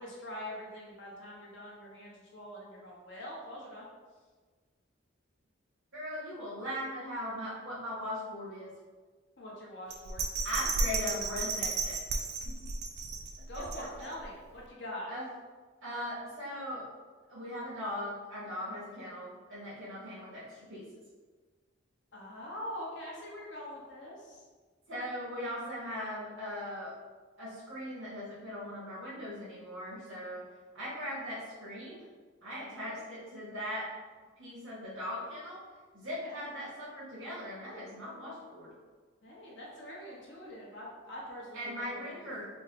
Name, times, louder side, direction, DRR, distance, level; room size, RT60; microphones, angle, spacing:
voice 1, 0.0-3.9 9.4-10.2 13.5-15.1 22.1-24.4 32.7-33.0 36.0-36.5 39.2-42.2, left 1 dB, 65° left, -4 dB, 1.1 m, -44 dB
voice 2, 5.9-8.7 10.4-12.0 12.4-12.5 13.7-13.8 15.1-15.2 15.8-16.8 17.3-20.9 24.9-26.9 27.4-30.4 30.7-32.0 32.4-33.9 34.4-35.6 35.9-38.7 41.5-42.4, left 1 dB, 85° right, -11 dB, 1.2 m, -39 dB
Bell, 9.9-14.2 14.7-14.8, right 4 dB, 55° right, 0.4 m, -34 dB
4.2 x 2.2 x 3.6 m, 1.4 s
head